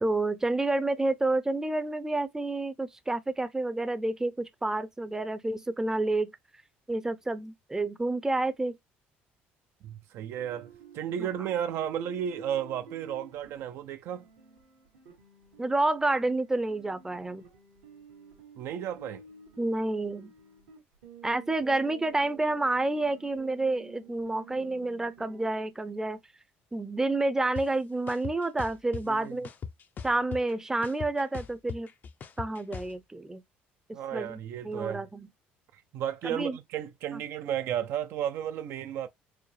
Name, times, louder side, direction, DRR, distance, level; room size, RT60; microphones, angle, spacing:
voice 1, 0.0-6.3 6.9-8.7 11.2-11.3 15.6-17.4 19.6-20.3 21.2-26.2 26.7-29.5 30.0-31.9 32.4-33.4 34.1-34.4 34.6-35.3 36.2-36.6, right 2 dB, 10° right, 0.5 m, -29 dB
voice 2, 9.8-10.7 10.9-14.3 18.6-19.2 29.1-29.4 33.9-35.1 35.9-39.1, right 10 dB, 65° right, 0.4 m, -33 dB
sound 1, 10.3-25.5, right 5 dB, 90° right, 1.6 m, -51 dB
sound 2, 27.6-27.7 28.1-29.0 29.4-30.5 30.8-32.9, left 6 dB, 40° left, 0.5 m, -39 dB
4.8 x 2.0 x 3.2 m
supercardioid pair, 80°, 5 cm